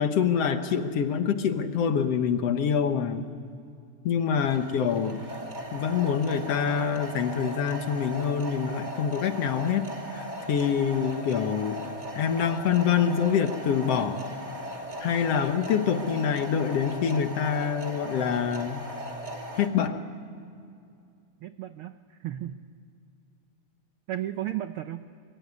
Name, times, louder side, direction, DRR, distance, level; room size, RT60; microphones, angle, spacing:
voice 1, 0.0-3.3 4.0-5.2 5.7-11.8 12.2-14.2 15.0-18.9 19.6-20.0, left 7 dB, 60° left, 8 dB, 2.0 m, -26 dB
sound 1, 4.4-19.7, equal, 15° right, 2.5 m, -38 dB
voice 2, 4.4-4.8 21.4-22.6 24.1-25.0, right 12 dB, 85° right, 9 dB, 1.2 m, -35 dB
24.0 x 22.5 x 9.6 m, 2.4 s
omnidirectional pair, 3.4 m